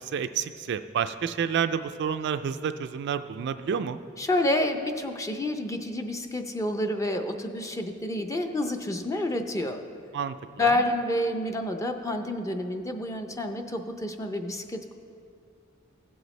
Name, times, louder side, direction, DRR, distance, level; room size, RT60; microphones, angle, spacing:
voice 1, 0.0-4.0 10.1-10.7, right 7 dB, 55° right, 10 dB, 0.3 m, -29 dB
voice 2, 4.2-9.8 10.6-14.9, left 1 dB, 15° left, 5 dB, 0.5 m, -29 dB
16.0 x 7.8 x 3.2 m, 2.4 s
head